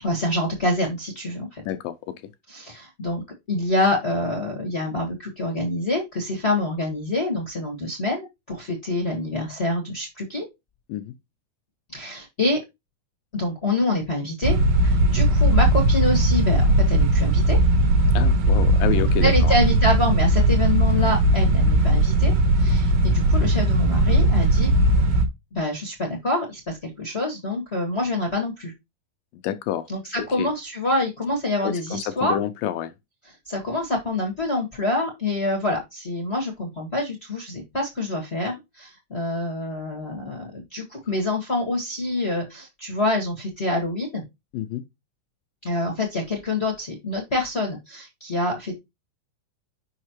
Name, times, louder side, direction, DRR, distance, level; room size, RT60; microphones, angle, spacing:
voice 1, 0.0-1.6 2.5-3.2 3.5-10.5 11.9-12.6 13.3-17.6 19.2-24.7 25.5-28.7 29.9-32.4 33.4-44.2 45.6-48.7, left 2 dB, 50° left, 0.7 m, -26 dB
voice 2, 1.6-2.1 10.9-11.2 18.1-19.5 29.4-29.9 30.2-30.5 31.6-32.9 44.5-44.8, left 11 dB, 80° left, 2.2 m, -28 dB
sound 1, 14.4-25.2, right 1 dB, 70° right, 2.5 m, -18 dB
6.4 x 5.7 x 3.0 m
omnidirectional pair, 4.3 m